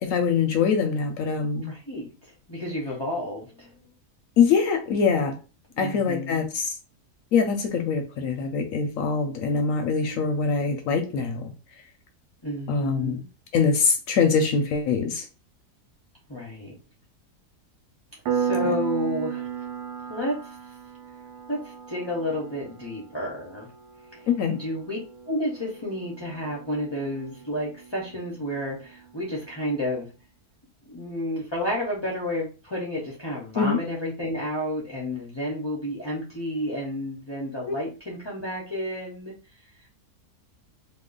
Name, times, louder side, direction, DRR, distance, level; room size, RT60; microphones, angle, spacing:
voice 1, 0.0-1.7 4.4-5.3 5.8-6.7 7.3-11.5 12.7-13.2 13.5-15.3 24.3-24.6 33.6-33.8, left 5 dB, 70° left, 0.8 m, -23 dB
voice 2, 1.5-3.9 5.8-6.5 12.4-13.2 16.3-16.8 18.3-19.7 20.1-20.6 21.5-23.7 24.1-25.0 25.3-30.1 30.8-39.3 39.8-39.9, left 1 dB, 35° left, 0.4 m, -31 dB
Piano, 18.3-28.6, right 8 dB, 90° right, 1.2 m, -35 dB
2.9 x 2.0 x 3.8 m
omnidirectional pair, 1.7 m